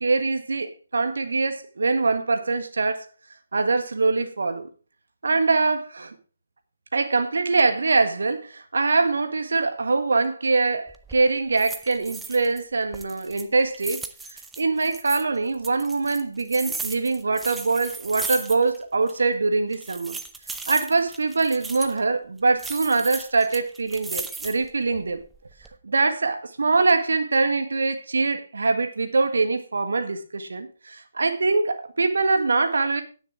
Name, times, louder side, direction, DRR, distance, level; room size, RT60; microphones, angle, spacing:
voice 1, 0.0-3.1 3.5-4.7 5.2-6.2 6.9-14.0 14.6-20.2 20.7-25.2 25.8-33.0, right 3 dB, 65° right, 1.7 m, -23 dB
sound 1, 10.9-11.2 11.6-12.6 12.9-15.2 15.6-18.8 19.1-19.2 19.7-22.0 22.6-24.7 25.2-25.7, right 4 dB, 5° right, 0.7 m, -36 dB
17.5 x 6.5 x 3.5 m
figure-of-eight pair, 140°, 0 cm